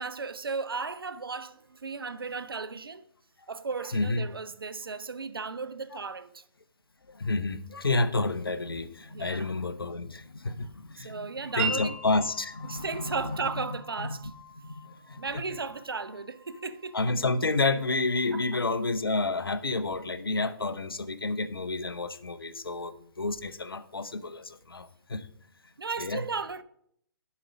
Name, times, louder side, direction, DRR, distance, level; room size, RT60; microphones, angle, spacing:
voice 1, 0.0-3.0 3.5-6.4 9.1-9.5 11.0-12.0 12.7-14.3 15.2-17.0 18.3-18.6 25.8-26.6, right 4 dB, 85° right, 0.5 m, -35 dB
voice 2, 3.9-4.2 7.1-11.2 11.6-13.4 14.0-14.2 14.6-14.7 15.1-15.4 16.9-25.3 26.0-26.2, left 3 dB, 90° left, 0.6 m, -30 dB
Wind chime, 11.6-19.2, right 4 dB, 35° right, 1.7 m, -41 dB
7.2 x 5.2 x 6.0 m
figure-of-eight pair, 130°, 12 cm